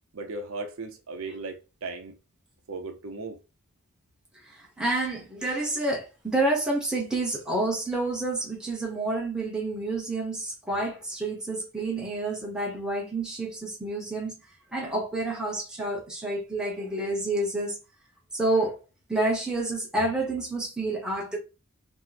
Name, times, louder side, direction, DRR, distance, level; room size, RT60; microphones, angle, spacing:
voice 1, 0.1-2.1 2.7-3.4, right 3 dB, 65° right, 0.6 m, -36 dB
voice 2, 4.5-14.4 14.7-17.8 18.3-18.8 19.1-21.4, right 2 dB, 5° right, 0.9 m, -29 dB
3.0 x 2.1 x 3.9 m
head